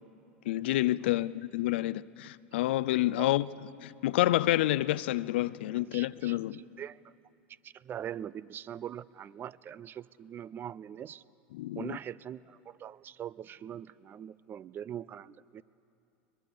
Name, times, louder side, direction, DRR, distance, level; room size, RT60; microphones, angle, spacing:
voice 1, 0.5-3.5 3.8-6.6 11.5-12.0, left 16 dB, 70° left, 0.5 m, -28 dB
voice 2, 5.9-7.1 7.6-11.2 11.7-15.6, right 10 dB, 35° right, 0.5 m, -42 dB
22.0 x 21.5 x 6.8 m
hypercardioid pair, 85°, 6 cm